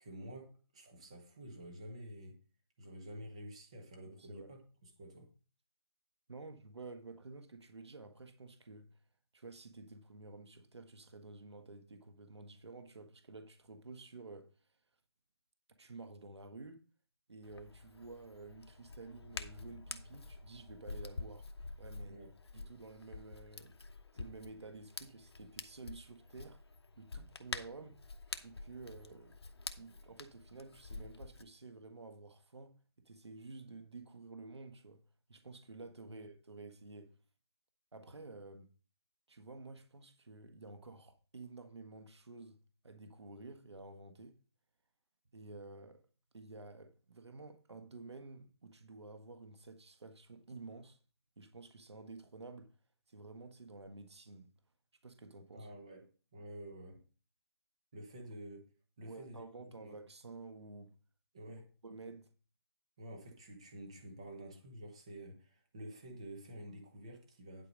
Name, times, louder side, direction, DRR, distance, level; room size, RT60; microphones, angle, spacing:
voice 1, 0.0-2.4 2.8-5.3 22.0-22.3 36.1-36.2 55.5-56.1 56.3-57.0 57.9-58.7 59.0-60.0 61.3-61.6 63.0-67.7, right 1 dB, 15° right, 0.9 m, -50 dB
voice 2, 4.0-4.5 6.3-8.9 9.3-14.5 15.8-16.8 17.3-21.5 21.8-22.2 22.5-23.7 24.1-26.6 27.0-28.0 28.4-29.4 29.8-32.7 33.0-35.0 35.3-37.1 37.9-38.7 39.3-44.4 45.3-46.0 46.3-51.0 51.4-52.7 53.1-54.5 55.0-55.7 59.0-60.9 61.5-61.6 61.8-62.3, right 3 dB, 85° right, 1.5 m, -51 dB
Hands, 17.4-31.4, left 3 dB, 70° left, 1.1 m, -48 dB
11.0 x 4.8 x 5.1 m
hypercardioid pair, 180°, 14 cm